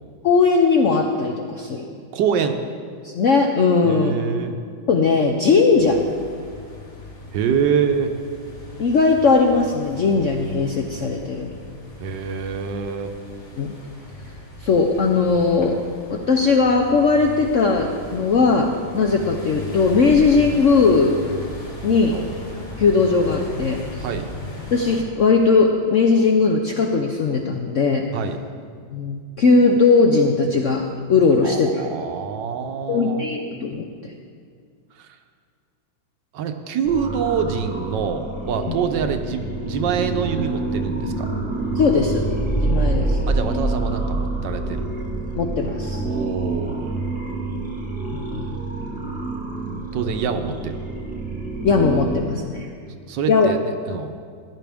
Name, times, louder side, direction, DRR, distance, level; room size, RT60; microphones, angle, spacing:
voice 1, 0.2-1.8 3.0-4.1 4.9-6.1 8.8-11.5 13.6-13.7 14.6-15.8 16.1-21.2 21.8-22.1 22.8-24.0 24.7-28.1 28.9-31.8 32.9-33.8 38.7-38.8 41.7-42.2 42.6-43.2 45.4-46.0 48.1-48.5 51.6-52.7 53.3-53.5, left 4 dB, 70° left, 2 dB, 0.7 m, -18 dB
voice 2, 2.1-2.6 3.8-4.6 7.3-8.1 12.0-13.1 22.1-22.3 24.0-24.3 28.1-28.4 31.4-33.2 35.0-35.1 36.3-41.3 43.3-44.9 46.0-47.0 49.9-50.8 53.1-54.1, right 7 dB, 70° right, 7 dB, 1.3 m, -25 dB
sound 1, 5.7-25.0, left 1 dB, 35° left, 2.6 m, -37 dB
sound 2, 36.8-52.2, right 2 dB, 5° right, 1.0 m, -27 dB
15.0 x 11.0 x 3.5 m, 2.1 s
omnidirectional pair, 2.1 m